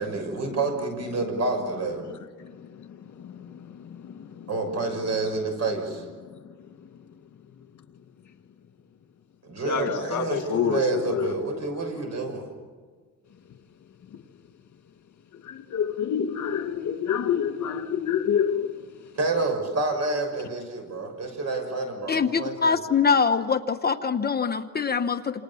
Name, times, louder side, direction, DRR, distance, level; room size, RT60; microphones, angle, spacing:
voice 1, 0.0-2.0 4.5-6.0 9.4-12.5 19.2-22.5, right 3 dB, 60° right, 5 dB, 6.3 m, -28 dB
voice 2, 3.2-3.7 4.0-4.5 9.6-11.3 15.5-18.7, left 8 dB, 70° left, 6 dB, 2.3 m, -27 dB
voice 3, 22.1-25.4, left 5 dB, 30° left, 7 dB, 1.0 m, -24 dB
28.5 x 28.0 x 7.1 m, 1.5 s
wide cardioid pair, 140°, 30 cm